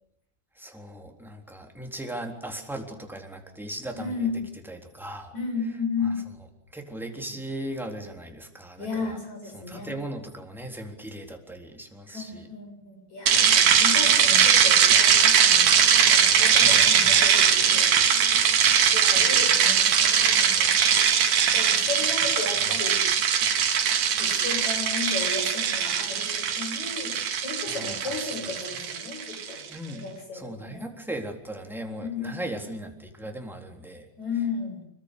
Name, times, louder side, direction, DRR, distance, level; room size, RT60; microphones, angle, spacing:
voice 1, 0.6-4.3 4.7-5.3 6.7-9.2 9.5-12.5 16.6-17.1 27.7-28.2 29.7-30.1 30.3-34.1, right 1 dB, ahead, 2 dB, 3.4 m, -38 dB
voice 2, 3.9-4.4 5.3-6.2 8.8-10.0 12.1-18.3 18.9-20.9 21.5-23.0 24.2-29.6 29.9-30.9 32.0-32.5 34.2-34.8, left 4 dB, 65° left, 3 dB, 9.2 m, -34 dB
sound 1, 13.3-29.5, right 8 dB, 80° right, 3.3 m, -21 dB
27.0 x 22.0 x 8.4 m, 0.79 s
omnidirectional pair, 3.5 m